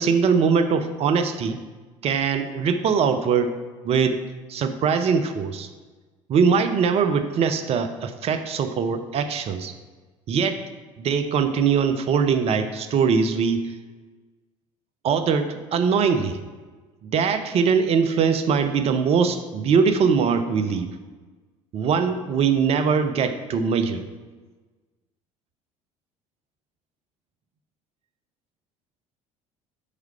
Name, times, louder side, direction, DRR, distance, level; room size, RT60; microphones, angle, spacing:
voice 1, 0.0-1.6 2.0-3.5 3.8-4.2 4.5-5.7 6.3-9.7 10.3-10.7 11.0-13.7 15.0-16.4 17.0-20.9 21.7-24.0, right 6 dB, 40° right, 8 dB, 0.5 m, -22 dB
4.9 x 4.6 x 5.4 m, 1.3 s
figure-of-eight pair, 60°, 17 cm